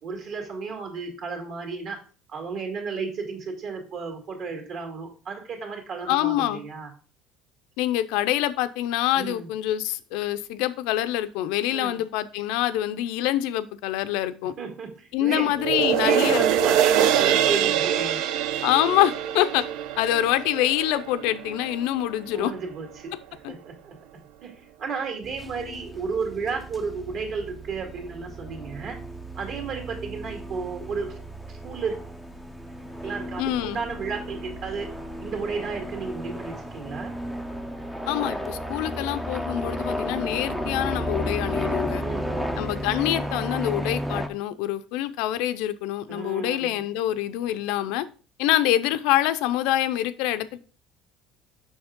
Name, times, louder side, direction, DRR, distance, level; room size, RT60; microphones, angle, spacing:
voice 1, 0.0-2.0 2.3-6.9 9.2-9.5 11.7-12.0 14.6-15.5 15.9-18.2 22.3-24.0 24.4-29.0 29.3-31.2 31.5-32.0 33.0-34.9 35.2-37.1 41.9-42.6 46.1-46.8, right 5 dB, 45° right, 2 dB, 2.1 m, -33 dB
voice 2, 6.1-6.6 7.8-14.5 15.1-16.5 18.6-19.7 20.0-22.5 23.4-23.5 33.4-33.8 38.1-42.0 42.6-48.0 48.4-50.6, left 13 dB, 70° left, 12 dB, 0.5 m, -25 dB
sound 1, 15.6-22.1 22.6-22.7, right 10 dB, 60° right, 0.5 m, -24 dB
sound 2, 25.2-44.3, equal, ahead, 0.5 m, -33 dB
7.0 x 6.1 x 3.7 m, 0.37 s
cardioid pair, 175°, 0 cm